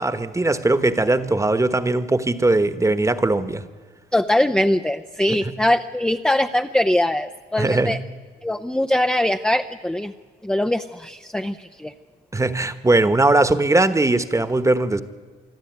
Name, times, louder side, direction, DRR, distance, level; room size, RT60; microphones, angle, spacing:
voice 1, 0.0-3.6 7.6-8.0 12.3-15.0, right 2 dB, 15° right, 12 dB, 1.3 m, -19 dB
voice 2, 4.1-8.0 8.4-10.1 10.4-11.9, left 1 dB, 5° left, 7 dB, 0.6 m, -22 dB
25.5 x 12.0 x 9.4 m, 1.5 s
cardioid pair, 90°, 20 cm